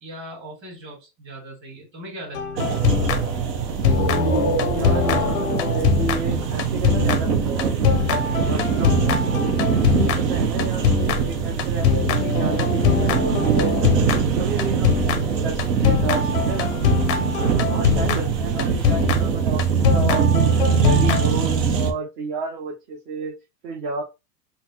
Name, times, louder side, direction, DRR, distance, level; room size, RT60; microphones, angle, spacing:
voice 1, 0.0-2.8 17.4-17.8, right 1 dB, 25° right, -3 dB, 2.0 m, -39 dB
sound 1, 2.3-3.6 3.8-21.6, left 6 dB, 35° left, 0.4 m, -23 dB
sound 2, 2.6-21.9, right 7 dB, 75° right, 0.9 m, -23 dB
sound 3, 3.8-7.4, equal, 5° right, 0.6 m, -28 dB
voice 2, 4.6-7.7 8.5-9.3 9.8-13.8 14.4-16.8 17.3-20.4 20.8-23.3 23.6-24.0, right 4 dB, 45° right, -1 dB, 0.8 m, -31 dB
3.9 x 2.1 x 2.8 m, 0.26 s
hypercardioid pair, 145°, 50 cm